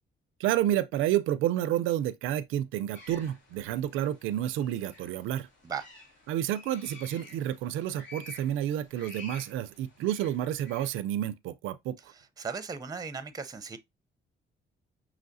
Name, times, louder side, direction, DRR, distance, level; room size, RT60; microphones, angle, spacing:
voice 1, 0.4-5.5 6.3-12.0, right 12 dB, 90° right, 0.4 m, -30 dB
sound 1, 2.9-11.0, left 2 dB, 70° left, 1.8 m, -51 dB
voice 2, 12.0-13.8, right 5 dB, 20° right, 0.6 m, -37 dB
5.6 x 3.1 x 2.5 m
cardioid pair, 90°, 20 cm